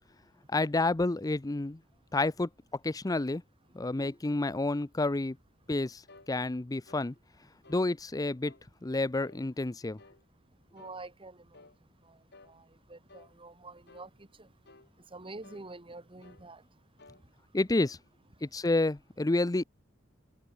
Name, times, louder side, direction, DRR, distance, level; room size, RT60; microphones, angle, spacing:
voice 1, 0.5-1.8 2.1-2.5 2.8-3.4 3.7-5.4 5.7-6.0 6.3-7.1 7.7-8.5 8.8-10.0 17.5-18.0 18.4-19.6, left 2 dB, 20° left, 0.5 m, -29 dB
sound 1, 6.1-6.3 6.9-7.1 7.6-7.9 8.4-8.7 9.2-9.4 10.0-10.2 10.8-11.0 11.5-11.8 12.3-12.6 13.1-13.3 13.9-14.1 14.7-14.9 15.4-15.7 16.2-16.5 17.0-17.2 17.8-18.0, left 3 dB, 60° left, 4.6 m, -56 dB
voice 2, 10.7-11.5 12.1-12.2 12.5-14.1 14.4-14.5 15.1-16.6, right 2 dB, 25° right, 2.3 m, -47 dB
head